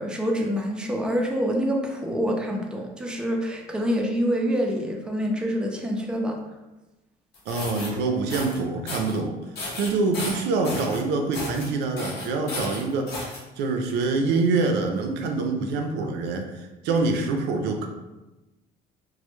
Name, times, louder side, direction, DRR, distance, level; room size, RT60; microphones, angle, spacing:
voice 1, 0.0-6.4, equal, 5° right, 0 dB, 0.3 m, -26 dB
sound 1, 7.3-7.9 8.3-8.6 8.9-9.2 9.6-11.0 11.3-11.7 12.0-13.4, left 2 dB, 70° left, 0.7 m, -33 dB
voice 2, 7.5-9.4 9.8-17.9, right 3 dB, 90° right, 3 dB, 0.4 m, -25 dB
2.1 x 2.0 x 2.9 m, 1.0 s
cardioid pair, 110°, 17 cm